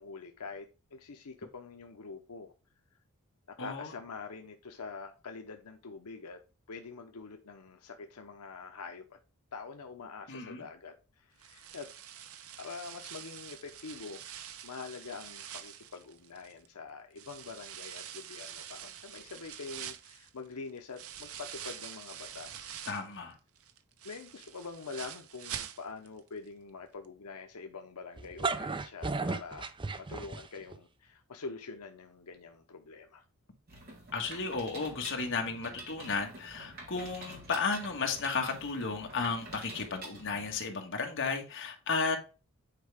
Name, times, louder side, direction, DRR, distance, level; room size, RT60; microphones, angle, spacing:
voice 1, 0.0-2.5 3.5-6.4 6.7-9.2 9.5-11.9 12.6-14.2 14.6-22.8 24.0-29.7 30.0-33.2, left 4 dB, 90° left, 0.8 m, -45 dB
voice 2, 3.6-3.9 10.3-10.6 22.9-23.3 34.1-42.2, left 4 dB, 55° left, 1.7 m, -34 dB
sound 1, 11.4-16.7 17.2-23.2 23.6-26.2 26.5-26.6 27.0-27.1, right 9 dB, 70° right, 0.8 m, -46 dB
sound 2, 28.2-30.8, right 4 dB, 20° right, 0.5 m, -34 dB
Mechanisms, 33.7-40.7, right 2 dB, 45° right, 3.5 m, -48 dB
9.1 x 4.8 x 3.5 m
head